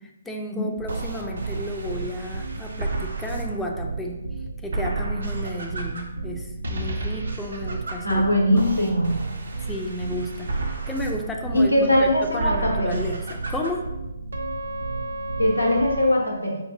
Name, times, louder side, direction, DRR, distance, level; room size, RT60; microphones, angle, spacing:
voice 1, 0.0-4.2 4.6-8.2 8.5-8.9 9.6-11.7 12.0-13.8, left 1 dB, 5° left, 0 dB, 0.3 m, -33 dB
sound 1, 0.8-16.1, right 3 dB, 65° right, 0.5 m, -31 dB
voice 2, 8.0-9.2 11.5-12.9 15.4-16.6, left 1 dB, 90° left, 0 dB, 0.8 m, -21 dB
5.2 x 2.3 x 2.6 m, 0.94 s
figure-of-eight pair, 135°, 0 cm